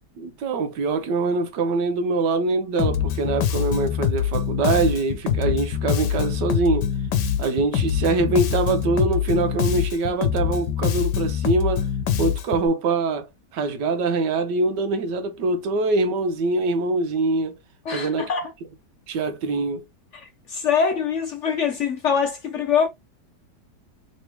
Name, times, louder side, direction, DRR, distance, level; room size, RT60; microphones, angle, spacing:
voice 1, 0.2-6.9 7.4-11.9 12.2-13.3 13.5-17.6 17.9-18.3 19.1-19.8, right 3 dB, 85° right, 1.4 m, -23 dB
Bass guitar, 2.8-12.7, left 8 dB, 90° left, 1.3 m, -24 dB
voice 2, 17.8-18.5 20.1-22.9, left 6 dB, 60° left, 0.8 m, -24 dB
3.5 x 3.2 x 2.9 m
omnidirectional pair, 1.8 m